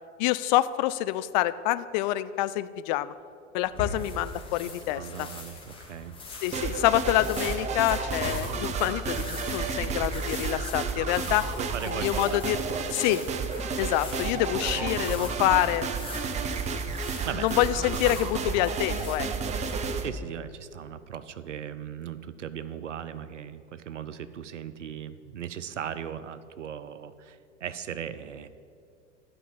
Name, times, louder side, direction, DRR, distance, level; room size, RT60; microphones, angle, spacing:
voice 1, 0.2-3.1 3.5-5.3 6.4-11.5 11.9-12.6 12.9-13.2 13.8-15.9 17.4-19.3, left 15 dB, 40° left, 14 dB, 0.4 m, -26 dB
sound 1, 3.6-19.2, left 3 dB, 15° left, 2.2 m, -42 dB
voice 2, 4.9-6.2 11.6-12.9 14.1-15.7 17.2-17.4 18.1-18.2 20.0-28.5, right 9 dB, 75° right, 13 dB, 0.7 m, -38 dB
sound 2, 6.5-20.1, right 5 dB, 20° right, 0.6 m, -31 dB
11.0 x 5.3 x 7.4 m, 2.3 s
figure-of-eight pair, 85°, 36 cm